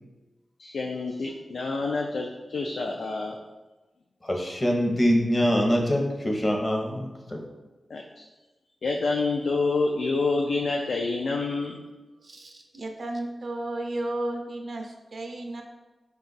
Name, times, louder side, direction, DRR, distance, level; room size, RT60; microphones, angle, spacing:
voice 1, 0.6-3.4 7.9-8.2 8.8-11.8, left 3 dB, 75° left, 1 dB, 0.3 m, -27 dB
voice 2, 4.3-7.4, equal, 25° left, 0 dB, 0.7 m, -24 dB
voice 3, 12.2-15.6, right 1 dB, 60° right, 3 dB, 0.4 m, -33 dB
4.3 x 2.3 x 3.9 m, 1.2 s
wide cardioid pair, 100°, 0 cm